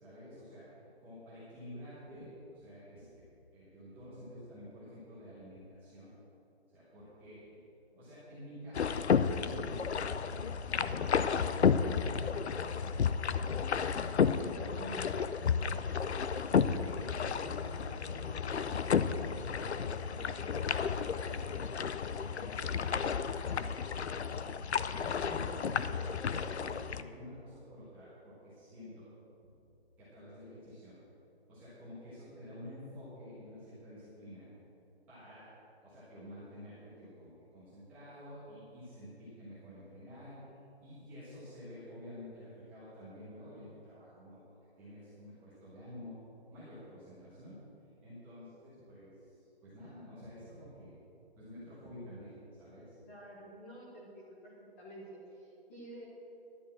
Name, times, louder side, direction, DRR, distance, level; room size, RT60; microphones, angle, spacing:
voice 1, 0.0-3.1 3.5-6.1 6.7-7.6 7.9-13.6 14.2-16.3 16.7-21.5 21.9-22.7 23.0-24.3 24.8-29.1 29.4-29.5 30.0-30.9 31.5-34.5 35.1-35.5 35.8-40.5 40.8-44.4 44.8-46.2 46.5-47.6 48.0-50.9 51.4-53.0, equal, 5° right, -12 dB, 1.3 m, -50 dB
sound 1, 8.7-27.0, left 6 dB, 80° left, 0.6 m, -32 dB
voice 2, 53.0-56.1, right 1 dB, 15° left, -6 dB, 1.4 m, -50 dB
11.0 x 6.9 x 7.5 m, 2.8 s
hypercardioid pair, 170°, 32 cm